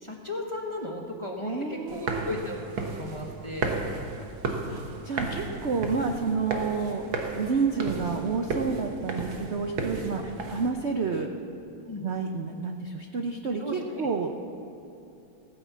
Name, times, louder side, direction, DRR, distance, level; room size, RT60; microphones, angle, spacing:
voice 1, 0.0-2.6 2.9-3.7 10.2-10.3 11.8-12.0 13.6-14.1, left 2 dB, 20° left, 0 dB, 1.0 m, -36 dB
voice 2, 1.4-2.3 4.7-7.0 7.3-11.3 12.0-14.3, right 5 dB, 60° right, 4 dB, 0.7 m, -29 dB
sound 1, 1.9-10.7, right 3 dB, 75° right, 2.0 m, -34 dB
16.0 x 9.5 x 7.4 m, 2.8 s
omnidirectional pair, 2.2 m